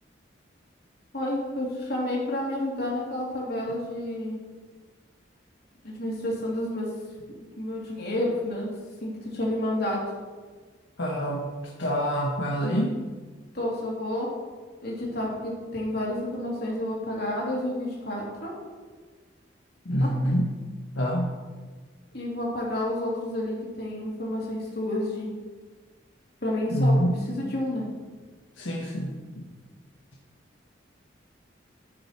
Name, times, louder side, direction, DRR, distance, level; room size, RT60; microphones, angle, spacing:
voice 1, 1.1-4.4 5.8-6.9 7.3-8.7 9.0-10.0 13.5-14.3 14.8-18.5 20.0-20.1 22.1-25.3 26.4-26.9 27.3-27.8, left 1 dB, 55° left, -4 dB, 3.0 m, -30 dB
voice 2, 11.0-11.5 11.8-13.0 19.8-20.5 20.9-21.3 26.7-27.3 28.6-29.4, equal, 85° left, -2 dB, 1.3 m, -26 dB
12.5 x 6.4 x 4.5 m, 1.4 s
head